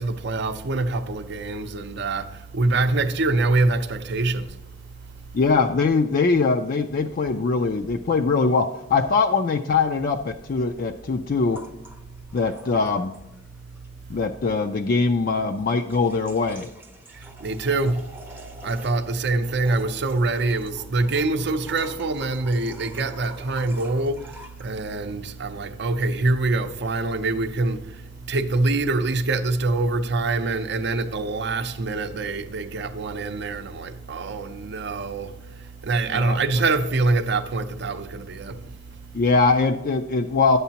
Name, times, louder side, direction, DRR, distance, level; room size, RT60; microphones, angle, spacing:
voice 1, 0.0-4.6 17.1-18.1 18.6-38.7, right 3 dB, 60° right, 0.6 m, -25 dB
voice 2, 5.3-11.6 12.3-13.1 14.1-16.7 36.1-36.4 39.1-40.6, left 4 dB, 50° left, 0.4 m, -22 dB
sound 1, 11.5-13.5 13.8-13.9 15.6-24.7, equal, 10° right, 0.6 m, -46 dB
10.5 x 8.1 x 2.9 m
head